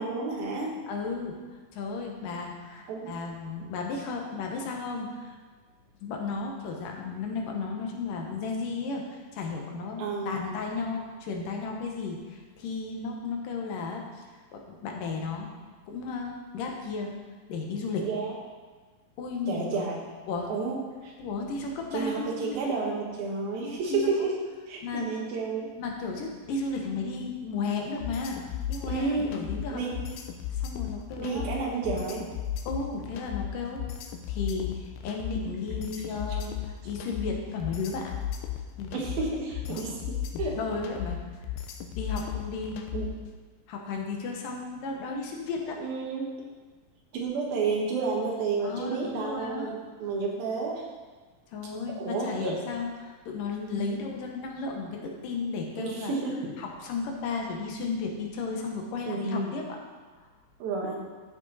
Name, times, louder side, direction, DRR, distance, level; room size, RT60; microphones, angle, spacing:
voice 1, 0.0-0.8 2.9-3.1 10.0-10.5 18.0-18.3 19.5-20.0 20.5-21.1 21.9-24.4 24.7-25.7 28.8-30.0 31.2-32.2 38.9-40.6 42.9-43.1 45.8-46.3 47.1-50.8 52.0-52.6 55.8-56.4 59.1-59.6 60.6-61.0, right 4 dB, 75° right, -2 dB, 3.5 m, -31 dB
voice 2, 0.9-1.4 1.7-5.3 6.0-14.2 14.5-15.5 15.9-17.1 17.5-18.1 19.2-19.8 20.3-20.5 21.2-22.6 23.6-24.1 24.8-25.1 25.8-29.9 30.5-31.5 32.7-33.8 34.3-38.2 38.8-39.0 39.7-39.8 40.6-41.2 42.0-42.8 43.7-45.8 48.6-49.7 51.5-56.1 56.6-59.6, left 4 dB, 70° left, 1 dB, 2.7 m, -34 dB
sound 1, 28.0-43.3, left 10 dB, 85° left, 2.7 m, -35 dB
13.0 x 6.3 x 4.2 m, 1.4 s
omnidirectional pair, 4.2 m